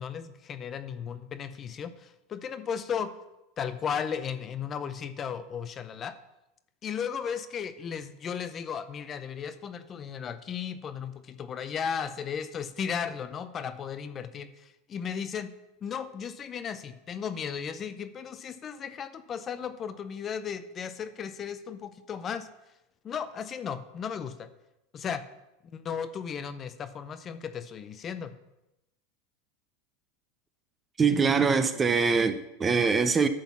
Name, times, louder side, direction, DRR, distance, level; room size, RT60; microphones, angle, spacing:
voice 1, 0.0-3.1 3.6-6.1 6.8-15.5 15.8-22.5 23.0-24.5 24.9-25.2 25.6-28.4, left 7 dB, 30° left, 0.6 m, -35 dB
voice 2, 31.0-33.3, right 5 dB, 20° right, 0.6 m, -23 dB
10.5 x 4.0 x 7.2 m
supercardioid pair, 120°, 0 cm